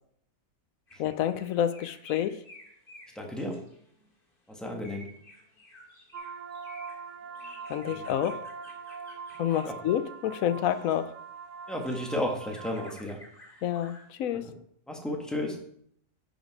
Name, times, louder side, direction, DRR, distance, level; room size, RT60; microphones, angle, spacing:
sound 1, 0.9-4.1 4.7-11.0 11.5-14.1, left 1 dB, 40° left, 2.5 m, -53 dB
voice 1, 1.0-2.4 7.7-8.4 9.4-11.1 13.6-14.5, left 10 dB, 85° left, 13 dB, 1.0 m, -28 dB
voice 2, 3.1-3.6 4.5-5.1 7.9-8.0 9.6-9.7 11.7-13.2 14.9-15.6, left 1 dB, ahead, 0 dB, 1.6 m, -33 dB
sound 2, 6.1-12.9, right 5 dB, 65° right, 1.2 m, -42 dB
10.5 x 5.8 x 4.8 m, 0.68 s
omnidirectional pair, 1.4 m